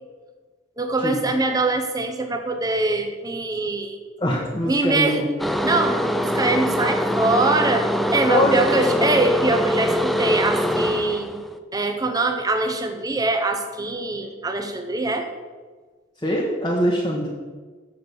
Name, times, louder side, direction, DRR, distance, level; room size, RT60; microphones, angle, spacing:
voice 1, 0.8-4.0 4.6-5.2 5.6-11.4 11.7-15.3, right 2 dB, 20° right, 5 dB, 0.8 m, -23 dB
voice 2, 4.2-5.3 8.2-9.1 16.2-17.3, equal, 20° left, -4 dB, 1.1 m, -23 dB
sound 1, 5.4-11.6, equal, ahead, 0.4 m, -23 dB
7.3 x 6.3 x 6.8 m, 1.4 s
head